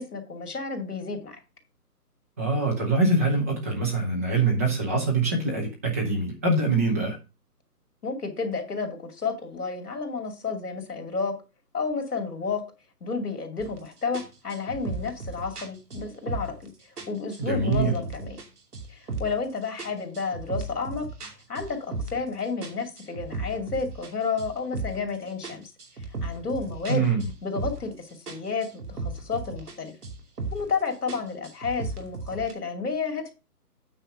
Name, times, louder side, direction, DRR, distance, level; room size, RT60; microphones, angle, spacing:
voice 1, 0.0-1.4 8.0-11.3 11.7-12.7 13.0-16.7 17.1-18.4 18.9-21.1 21.5-25.7 26.2-27.1 27.4-29.9 30.5-33.3, left 4 dB, 70° left, 2.7 m, -31 dB
voice 2, 2.4-7.2 17.4-18.0 26.9-27.3, right 3 dB, 10° right, 0.8 m, -24 dB
sound 1, 13.6-13.8 14.1-16.7 17.0-18.5 18.7-19.5 19.8-22.3 22.6-25.1 25.4-28.0 28.3-29.8 30.0-30.7 31.1-32.5, right 3 dB, 70° right, 2.8 m, -36 dB
9.0 x 4.3 x 6.4 m
hypercardioid pair, 160°, 48 cm